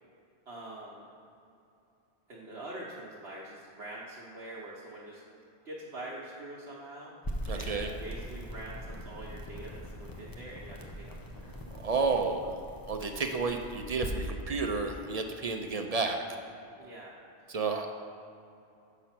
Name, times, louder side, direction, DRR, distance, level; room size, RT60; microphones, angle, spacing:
voice 1, 0.5-1.0 2.3-5.2 5.6-7.2 7.5-11.5 16.8-17.2, right 1 dB, 70° right, -5 dB, 1.2 m, -44 dB
sound 1, 7.2-14.3, equal, 25° left, 0.6 m, -41 dB
voice 2, 7.5-7.9 11.8-12.5 12.9-16.2 17.5-17.9, right 4 dB, 50° right, 4 dB, 0.4 m, -31 dB
7.0 x 5.6 x 5.9 m, 2.7 s
omnidirectional pair, 1.1 m